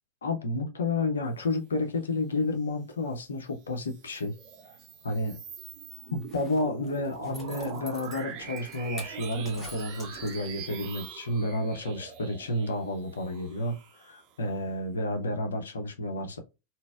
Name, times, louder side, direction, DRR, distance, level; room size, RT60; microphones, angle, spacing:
voice 1, 0.2-4.3 5.0-5.4 6.1-16.4, left 2 dB, 70° left, 0.7 m, -31 dB
sound 1, 3.7-14.6, right 8 dB, 35° right, 0.6 m, -44 dB
Zipper (clothing), 6.1-10.7 11.1-11.2, left 2 dB, 10° left, 1.1 m, -48 dB
3.9 x 2.0 x 2.3 m
figure-of-eight pair, 90°, 0 cm